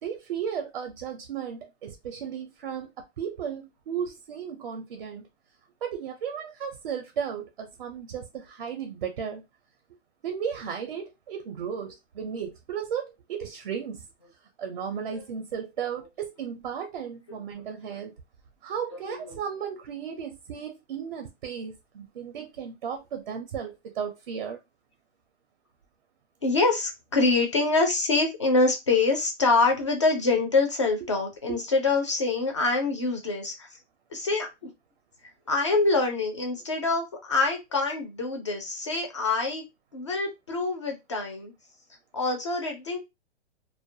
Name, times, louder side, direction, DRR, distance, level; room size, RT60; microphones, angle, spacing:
voice 1, 0.0-5.3 5.8-9.4 10.2-14.0 14.6-18.1 18.6-24.6 31.5-31.6, right 7 dB, 50° right, 0.4 m, -35 dB
voice 2, 19.1-19.4 26.4-33.8 34.1-34.7 35.5-39.6 39.9-41.5 42.1-43.0, left 3 dB, 30° left, 0.3 m, -25 dB
2.3 x 2.1 x 2.5 m
hypercardioid pair, 175°, 34 cm